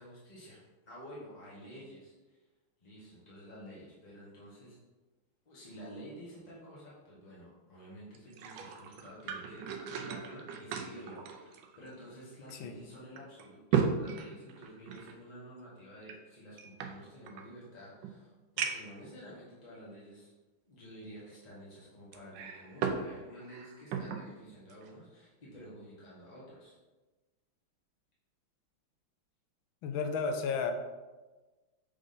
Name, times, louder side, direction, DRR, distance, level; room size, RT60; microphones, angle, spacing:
voice 1, 0.0-2.4 2.8-4.8 5.4-20.3 20.7-26.7, equal, 25° left, -8 dB, 1.0 m, -50 dB
sound 1, 8.1-12.2 12.5-12.6 13.2-15.2 16.0-17.5 18.0-18.1 18.6-19.0 19.8-19.9 22.1-23.1 23.4-24.3 24.7-24.9, right 7 dB, 75° right, 1.3 m, -36 dB
voice 2, 29.8-30.7, left 5 dB, 75° left, 6 dB, 1.4 m, -33 dB
6.4 x 3.8 x 4.0 m, 1.2 s
omnidirectional pair, 2.3 m